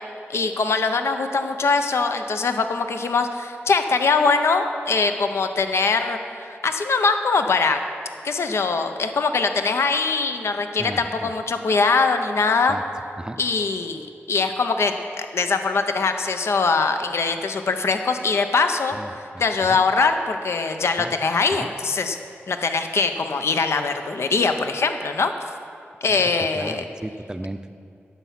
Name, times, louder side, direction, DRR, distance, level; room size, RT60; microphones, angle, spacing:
voice 1, 0.3-7.8 8.2-12.8 13.4-19.0 19.4-22.2 22.5-25.3 26.0-26.8, left 4 dB, 75° left, 7 dB, 0.6 m, -22 dB
voice 2, 10.8-11.3 12.7-12.8 13.2-13.4 18.9-19.8 21.0-21.1 21.5-21.7 26.1-26.2 26.5-27.7, right 1 dB, 15° right, 10 dB, 0.5 m, -35 dB
10.0 x 7.2 x 5.7 m, 2.4 s
cardioid pair, 60°, 5 cm